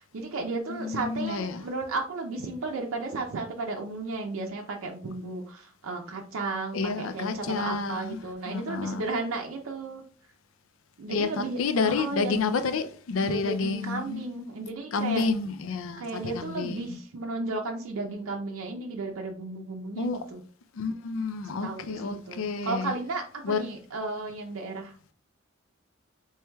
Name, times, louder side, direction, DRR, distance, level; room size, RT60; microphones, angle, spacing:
voice 1, 0.0-10.0 11.0-12.4 13.2-15.3 16.0-20.4 21.6-25.0, right 3 dB, 90° right, 0.5 m, -34 dB
voice 2, 0.7-1.6 6.7-8.2 8.5-9.1 11.1-14.2 14.9-16.0 16.3-17.0 20.0-20.2 20.7-22.9 23.4-23.6, left 4 dB, 85° left, 0.4 m, -29 dB
4.5 x 3.1 x 2.2 m
head